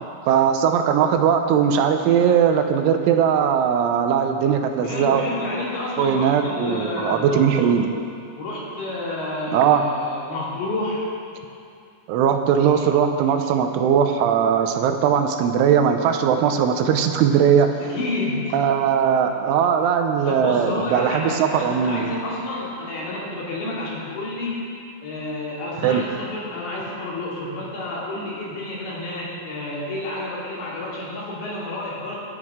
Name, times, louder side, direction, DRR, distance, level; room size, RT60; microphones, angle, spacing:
voice 1, 0.3-5.2 6.0-7.9 9.5-9.8 12.1-17.7 18.5-22.1 25.8-26.0, right 8 dB, 80° right, 5 dB, 3.1 m, -19 dB
voice 2, 4.8-7.8 8.4-11.2 17.8-18.7 20.3-24.7 25.0-32.2, left 2 dB, 65° left, -6 dB, 4.8 m, -30 dB
23.0 x 10.5 x 3.7 m, 2.5 s
omnidirectional pair, 5.6 m